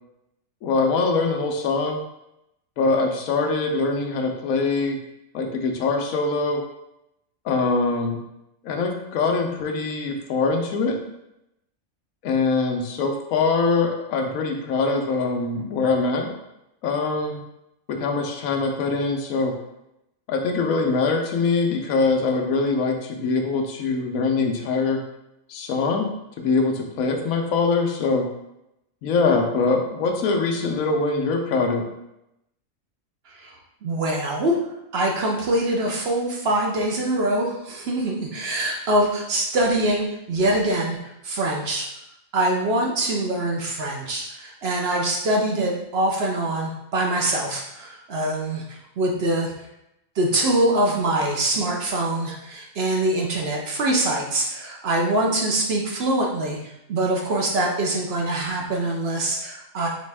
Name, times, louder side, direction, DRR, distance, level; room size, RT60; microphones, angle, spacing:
voice 1, 0.6-2.0 2.8-5.0 5.3-6.6 7.4-8.2 8.6-11.0 12.2-16.3 16.8-17.4 17.9-19.6 20.3-25.0 25.5-28.3 29.0-31.9, left 4 dB, 85° left, 3 dB, 1.1 m, -23 dB
voice 2, 33.8-34.6 34.9-41.0 41.2-41.9 42.3-49.5 50.2-59.9, right 1 dB, 60° right, 0 dB, 0.8 m, -24 dB
4.2 x 3.1 x 3.3 m, 0.86 s
omnidirectional pair, 1.4 m